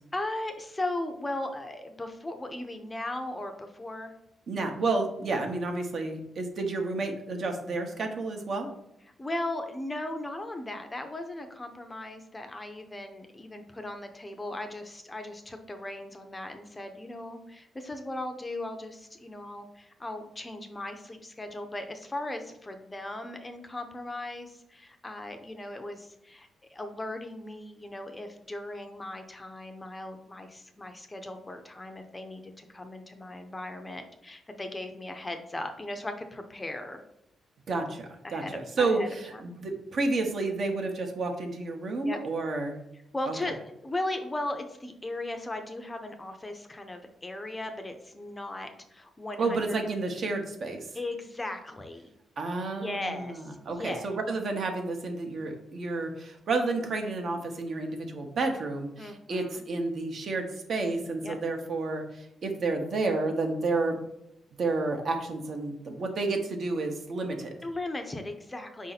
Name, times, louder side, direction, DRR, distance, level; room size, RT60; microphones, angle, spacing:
voice 1, 0.1-4.1 5.2-5.4 9.2-37.0 38.2-39.5 42.0-42.2 43.1-49.8 50.9-52.1 52.6-54.1 59.0-59.6 61.2-61.4 67.6-68.9, left 1 dB, 20° left, 6 dB, 0.5 m, -37 dB
voice 2, 4.5-8.7 37.7-39.0 39.4-42.7 43.3-43.4 49.4-50.8 52.4-64.0 64.6-67.5, right 3 dB, 55° right, 4 dB, 0.8 m, -30 dB
4.7 x 2.7 x 4.0 m, 0.80 s
cardioid pair, 105°, 0 cm